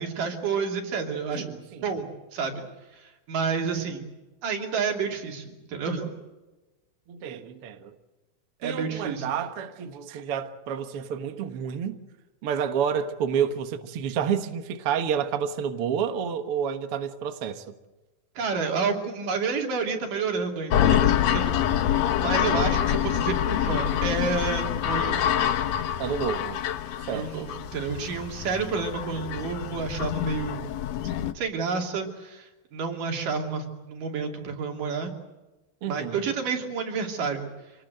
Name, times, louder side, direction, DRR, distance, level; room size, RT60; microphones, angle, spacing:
voice 1, 0.0-2.6 3.0-4.1 4.4-6.1 8.6-9.4 18.4-21.5 22.2-25.3 27.1-30.7 31.4-35.1 35.9-37.5, right 5 dB, 85° right, 4.5 m, -30 dB
voice 2, 1.3-1.8 7.1-8.0 8.6-12.0 12.4-17.6 22.3-22.8 26.0-26.6 27.1-27.4 35.8-36.2, right 7 dB, 55° right, 1.9 m, -29 dB
sound 1, 20.7-31.3, left 10 dB, 65° left, 2.0 m, -26 dB
26.5 x 19.5 x 7.9 m
omnidirectional pair, 3.7 m